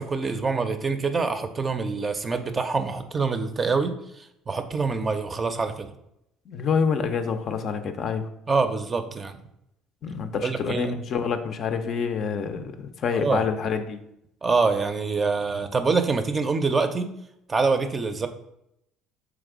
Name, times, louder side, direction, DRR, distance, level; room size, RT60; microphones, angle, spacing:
voice 1, 0.0-5.9 8.5-9.4 10.4-11.0 13.1-13.4 14.4-17.1 17.5-18.3, right 4 dB, 35° right, 8 dB, 0.4 m, -25 dB
voice 2, 6.5-8.3 10.0-14.0, left 6 dB, 55° left, 8 dB, 0.4 m, -27 dB
3.5 x 3.1 x 3.6 m, 0.79 s
hypercardioid pair, 65°, 0 cm